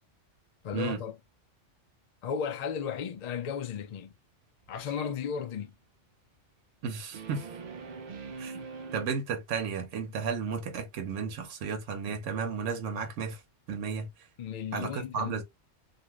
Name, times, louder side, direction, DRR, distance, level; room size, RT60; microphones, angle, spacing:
voice 1, 0.6-1.2 2.2-4.1 4.7-5.7 14.4-15.4, left 7 dB, 65° left, 0.4 m, -34 dB
sound 1, 4.6-5.0 7.1-9.1, right 5 dB, 50° right, 0.6 m, -42 dB
voice 2, 6.8-7.4 8.4-8.6 8.9-13.4 13.7-14.1 14.7-15.4, right 5 dB, 80° right, 1.1 m, -33 dB
2.7 x 2.5 x 2.9 m
omnidirectional pair, 1.3 m